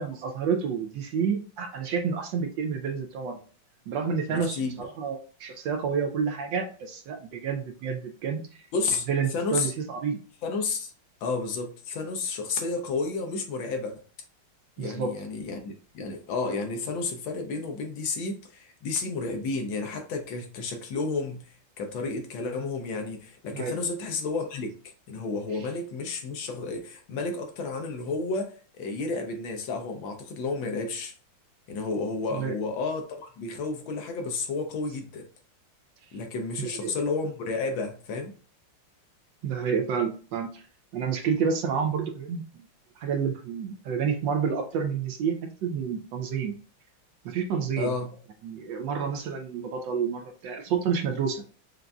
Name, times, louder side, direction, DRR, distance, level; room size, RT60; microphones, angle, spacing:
voice 1, 0.0-3.4 3.9-8.7 9.1-10.2 14.8-15.2 23.5-23.8 32.3-32.6 36.6-36.9 39.4-40.6 40.9-42.4 43.0-46.5 47.2-47.9 48.4-51.4, right 6 dB, 75° right, 1.2 m, -29 dB
voice 2, 4.3-4.7 8.7-9.1 9.3-9.7 10.4-10.9 11.2-13.9 14.8-21.4 21.8-24.7 25.1-31.1 31.7-35.2 36.1-38.3 47.8-48.1, left 3 dB, 70° left, 1.4 m, -31 dB
5.8 x 2.6 x 2.2 m
omnidirectional pair, 2.3 m